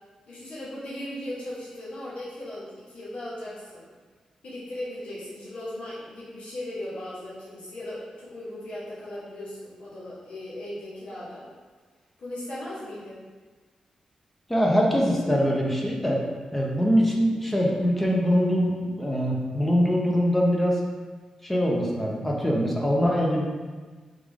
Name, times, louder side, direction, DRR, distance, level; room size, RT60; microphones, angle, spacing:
voice 1, 0.3-3.8 4.4-11.5 12.2-13.2, left 1 dB, 75° left, -9 dB, 1.1 m, -37 dB
voice 2, 14.5-16.2 16.5-20.8 21.4-23.4, equal, 10° left, -2 dB, 0.7 m, -23 dB
3.6 x 3.3 x 3.4 m, 1.4 s
cardioid pair, 95°, 2 cm